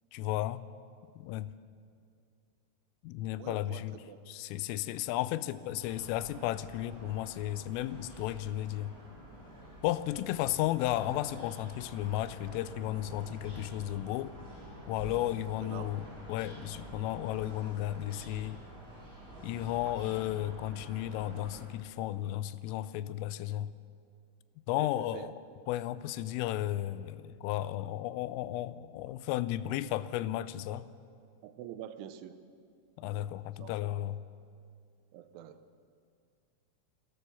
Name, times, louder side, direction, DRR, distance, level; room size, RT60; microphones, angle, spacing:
voice 1, 0.1-0.7 1.2-1.6 3.0-9.0 9.8-14.4 14.9-18.6 19.4-23.8 24.7-25.3 25.7-30.9 33.0-34.2, left 14 dB, 85° left, 16 dB, 3.3 m, -34 dB
voice 2, 3.4-4.2 15.6-15.9 19.9-20.0 24.8-25.3 31.4-32.4 33.6-33.9 35.1-35.6, right 11 dB, 75° right, 10 dB, 3.1 m, -45 dB
sound 1, 5.8-21.6, right 1 dB, 20° right, 8.2 m, -49 dB
28.0 x 14.0 x 7.1 m, 2.3 s
omnidirectional pair, 5.8 m